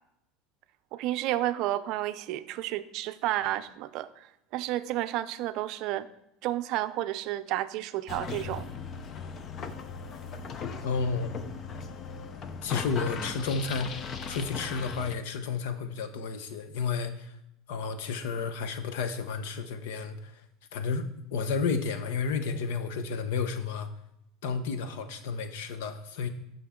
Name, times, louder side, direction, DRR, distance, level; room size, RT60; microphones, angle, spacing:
voice 1, 0.9-6.1 6.4-8.7, right 14 dB, 50° right, 12 dB, 0.5 m, -31 dB
sound 1, 8.1-15.2, left 5 dB, 30° left, 0.6 m, -38 dB
voice 2, 10.8-11.3 12.6-17.4 17.7-20.4 20.7-23.9 24.4-26.3, left 5 dB, 80° left, 10 dB, 0.9 m, -32 dB
13.0 x 5.7 x 3.7 m, 0.78 s
supercardioid pair, 150°, 0 cm